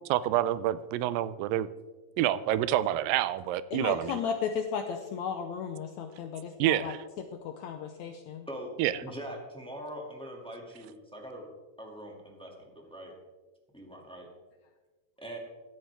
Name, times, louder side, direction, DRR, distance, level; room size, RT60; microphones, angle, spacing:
voice 1, 0.1-1.7 2.2-4.2 6.6-7.0 8.8-8.9, right 13 dB, 85° right, 16 dB, 2.2 m, -27 dB
voice 2, 3.7-6.9 7.4-8.5, left 7 dB, 80° left, 6 dB, 1.7 m, -34 dB
voice 3, 9.0-11.4 11.8-13.1 13.7-14.3 15.2-15.4, equal, ahead, -1 dB, 1.3 m, -42 dB
15.5 x 12.0 x 3.5 m, 1.2 s
omnidirectional pair, 4.0 m